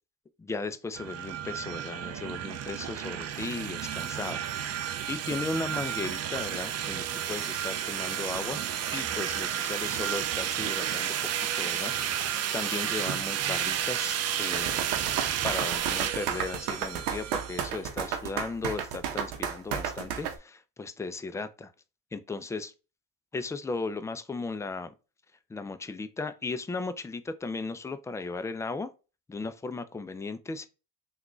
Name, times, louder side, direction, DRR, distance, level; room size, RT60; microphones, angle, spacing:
voice 1, 0.4-8.6 8.9-14.9 15.4-21.7 22.1-22.7 23.3-24.9 25.5-28.9 29.3-30.7, left 3 dB, 10° left, 0.3 m, -36 dB
sound 1, 1.0-17.7, right 10 dB, 50° right, 0.5 m, -32 dB
sound 2, 14.5-20.3, right 8 dB, 85° right, 0.7 m, -32 dB
3.6 x 2.4 x 3.0 m
supercardioid pair, 90°, 33 cm